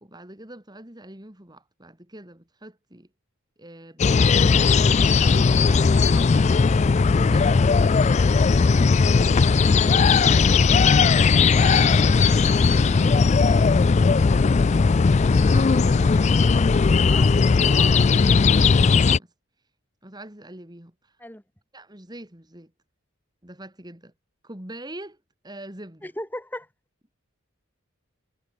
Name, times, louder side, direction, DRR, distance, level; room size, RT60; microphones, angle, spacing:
voice 1, 0.0-3.1 3.6-4.8 5.0-10.8 11.3-14.7 15.4-16.6 17.1-19.3 20.0-21.2 21.7-22.7 23.4-24.1 24.4-25.2 25.4-26.1, right 1 dB, 20° right, 2.7 m, -43 dB
sound 1, 4.0-19.2, left 4 dB, 30° left, 0.3 m, -18 dB
voice 2, 26.0-26.7, left 1 dB, 10° left, 3.8 m, -36 dB
head